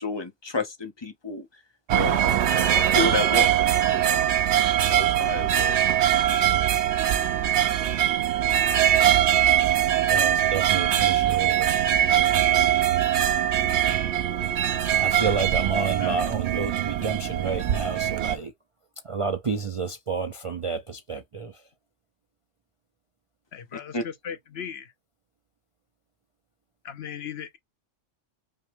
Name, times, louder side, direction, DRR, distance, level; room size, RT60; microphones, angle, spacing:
voice 1, 0.0-1.5 1.9-2.4 2.7-3.5 3.9-4.2 4.9-5.8 23.9-24.0, left 2 dB, 25° left, 0.7 m, -30 dB
sound 1, 1.9-18.4, right 11 dB, 70° right, 0.9 m, -22 dB
voice 2, 10.1-11.7 12.3-12.6 14.9-18.5 19.1-21.5, right 4 dB, 45° right, 0.4 m, -30 dB
voice 3, 15.8-16.1 23.5-24.9 26.8-27.6, left 8 dB, 65° left, 0.8 m, -38 dB
5.4 x 2.2 x 3.3 m
omnidirectional pair, 1.2 m